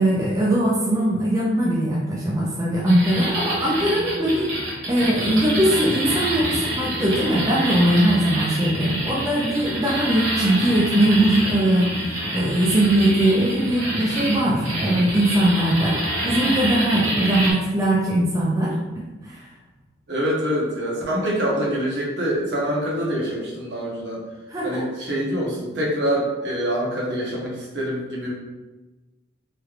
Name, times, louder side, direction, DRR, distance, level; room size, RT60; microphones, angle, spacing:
voice 1, 0.0-4.5 4.9-16.0 16.2-19.5 24.5-24.8, right 1 dB, 15° right, -5 dB, 0.4 m, -20 dB
sound 1, 2.9-17.5, right 1 dB, 85° right, 0.9 m, -27 dB
voice 2, 20.1-24.2 24.6-28.3, equal, 60° right, -4 dB, 0.9 m, -25 dB
3.1 x 3.1 x 2.4 m, 1.2 s
head